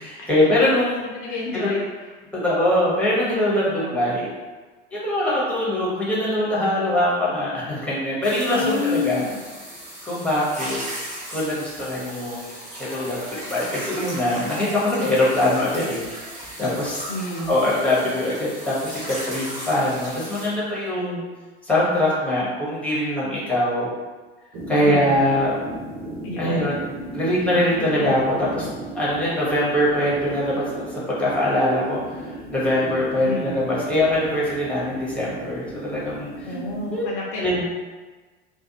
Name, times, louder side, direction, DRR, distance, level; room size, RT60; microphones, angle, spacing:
voice 1, 0.0-1.1 1.5-1.7 2.4-4.3 4.9-9.2 10.0-10.8 11.3-16.0 16.6-17.1 17.5-21.2 21.6-23.9 24.7-25.5 26.4-26.8 27.1-28.7 28.9-36.5 36.9-37.1 37.4-37.6, left 1 dB, 5° left, -7 dB, 0.9 m, -23 dB
voice 2, 1.1-1.8 3.7-4.0 8.5-9.4 17.1-17.5 24.7-25.2 26.2-26.7 27.8-28.1 33.2-33.5 36.4-37.4, left 3 dB, 60° left, -3 dB, 0.5 m, -29 dB
sound 1, 8.2-20.5, right 1 dB, 20° right, 1.0 m, -36 dB
sound 2, 24.5-37.0, right 1 dB, 50° right, 0.8 m, -36 dB
2.5 x 2.1 x 2.7 m, 1.3 s
figure-of-eight pair, 65°, 30 cm